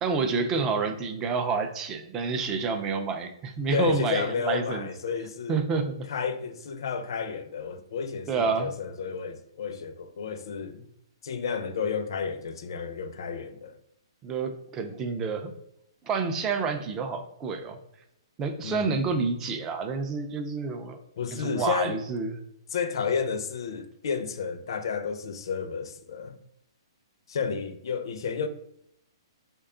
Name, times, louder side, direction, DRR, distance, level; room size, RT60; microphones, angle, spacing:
voice 1, 0.0-4.9 5.5-6.1 8.3-8.7 14.2-15.5 16.0-17.8 18.4-21.0 21.3-22.4, right 5 dB, 15° right, 0.3 m, -29 dB
voice 2, 3.7-5.6 6.1-10.9 11.2-13.8 18.6-19.0 21.2-22.0 22.7-26.4 27.3-28.5, left 6 dB, 60° left, 0.5 m, -31 dB
3.5 x 2.2 x 3.7 m
hypercardioid pair, 165°, 3 cm